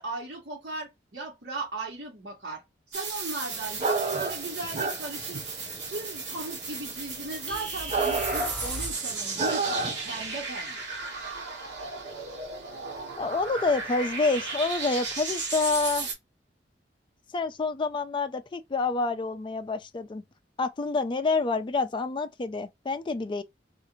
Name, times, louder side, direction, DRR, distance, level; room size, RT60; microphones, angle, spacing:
voice 1, 0.0-2.6 2.9-5.4 5.7-10.8, right 2 dB, 65° right, 1.2 m, -37 dB
sound 1, 2.9-16.1, right 4 dB, 85° right, 1.1 m, -35 dB
sound 2, 3.7-10.3, right 3 dB, 40° right, 0.6 m, -30 dB
sound 3, 7.5-9.1, equal, 5° left, 0.7 m, -37 dB
voice 2, 13.2-16.1 17.3-20.2 20.6-23.4, left 3 dB, 30° left, 0.3 m, -28 dB
2.5 x 2.5 x 2.9 m
head